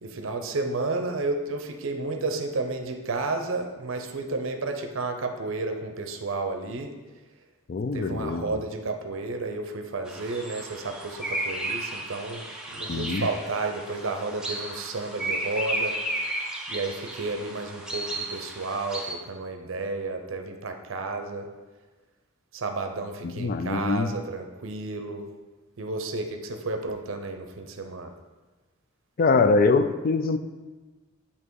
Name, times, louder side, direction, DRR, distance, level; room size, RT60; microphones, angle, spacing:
voice 1, 0.0-6.9 7.9-12.4 12.7-16.0 16.7-21.5 22.5-25.3 25.8-28.1, right 3 dB, 75° right, 5 dB, 0.6 m, -32 dB
voice 2, 7.7-8.6 12.9-13.3 23.2-24.2 29.2-30.4, left 4 dB, 45° left, 10 dB, 0.3 m, -23 dB
sound 1, 10.1-19.1, right 1 dB, 5° right, 0.5 m, -34 dB
8.4 x 2.9 x 4.6 m, 1.3 s
head